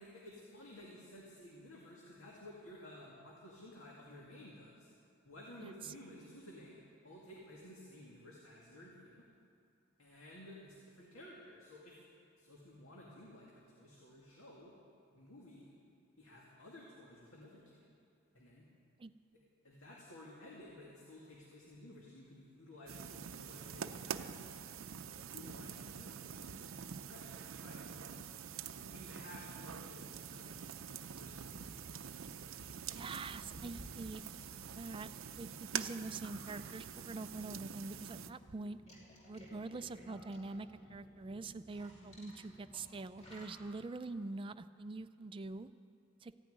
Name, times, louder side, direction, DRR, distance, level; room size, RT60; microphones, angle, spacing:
voice 1, 0.0-4.9 5.2-9.3 10.0-12.0 12.4-14.7 15.1-15.7 16.2-17.8 18.3-18.7 19.3-24.7 25.3-28.2 28.8-30.6 30.9-31.7, left 1 dB, 80° left, -4 dB, 2.1 m, -54 dB
sound 1, 22.9-38.3, right 7 dB, 75° right, 0.6 m, -46 dB
sound 2, 30.5-35.4, equal, 55° left, 1.8 m, -57 dB
voice 2, 32.9-34.2 34.7-38.8 39.3-45.7 46.2-46.3, right 3 dB, 25° right, 11 dB, 0.4 m, -45 dB
sound 3, 35.7-43.6, left 1 dB, 30° left, 2.9 m, -58 dB
14.5 x 9.8 x 9.3 m, 2.4 s
head